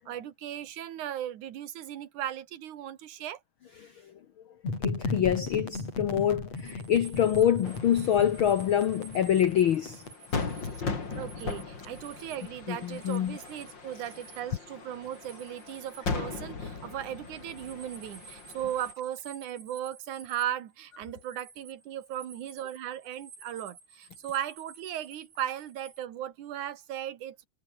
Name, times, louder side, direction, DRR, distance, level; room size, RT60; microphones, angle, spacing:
voice 1, 0.0-3.4 11.1-27.5, right 11 dB, 70° right, 3.0 m, -37 dB
sound 1, 4.6-10.1, left 3 dB, 50° left, 8.0 m, -36 dB
voice 2, 4.8-10.0 12.7-13.4, left 10 dB, 85° left, 1.1 m, -25 dB
sound 2, 6.6-20.4 20.8-26.1, right 4 dB, 90° right, 8.6 m, -53 dB
sound 3, 7.6-18.9, left 4 dB, 35° left, 3.9 m, -39 dB
omnidirectional pair, 3.8 m